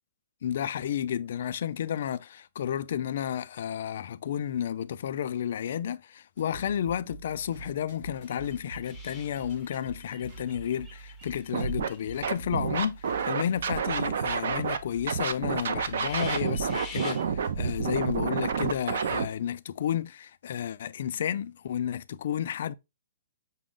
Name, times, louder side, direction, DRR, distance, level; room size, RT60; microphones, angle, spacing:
voice 1, 0.4-22.7, left 9 dB, 50° left, 0.3 m, -32 dB
sound 1, 6.4-19.5, right 3 dB, 40° right, 2.4 m, -46 dB
sound 2, 8.2-12.6 13.0-14.2 14.6-14.7 14.9-15.0 15.4-15.5 15.8-17.2, left 4 dB, 5° left, 0.6 m, -47 dB
Scratching (performance technique), 11.5-11.9 12.2-14.8 15.1-19.3, right 6 dB, 55° right, 0.5 m, -29 dB
6.0 x 2.1 x 3.7 m
hypercardioid pair, 170°, 0 cm